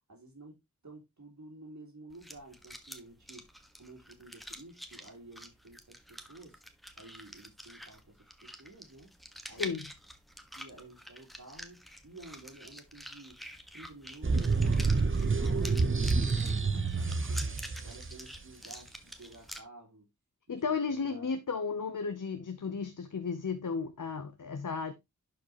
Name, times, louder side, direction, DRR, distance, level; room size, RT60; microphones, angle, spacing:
voice 1, 0.1-0.6 0.8-3.4 3.8-6.6 7.0-9.1 9.5-9.7 10.5-13.4 13.7-20.1 20.5-21.4, right 2 dB, 65° right, 3.1 m, -52 dB
sound 1, 2.1-19.6, equal, ahead, 1.5 m, -48 dB
voice 2, 9.5-9.9 20.5-24.9, left 5 dB, 80° left, 0.9 m, -34 dB
sound 2, 14.2-18.2, right 4 dB, 40° right, 0.9 m, -28 dB
11.5 x 5.1 x 3.0 m
wide cardioid pair, 65°, 31 cm